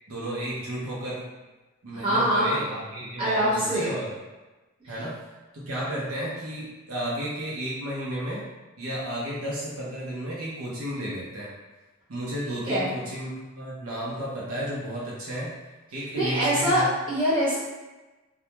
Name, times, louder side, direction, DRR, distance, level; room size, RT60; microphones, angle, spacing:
voice 1, 0.1-1.2 1.8-4.1 4.9-5.2 5.5-8.4 8.8-11.5 12.1-15.5 15.9-16.9, right 1 dB, 80° right, -6 dB, 0.8 m, -32 dB
voice 2, 2.0-2.6 3.2-4.0 12.6-13.0 16.1-17.6, equal, 25° right, -11 dB, 1.0 m, -24 dB
2.3 x 2.2 x 2.9 m, 1.1 s
head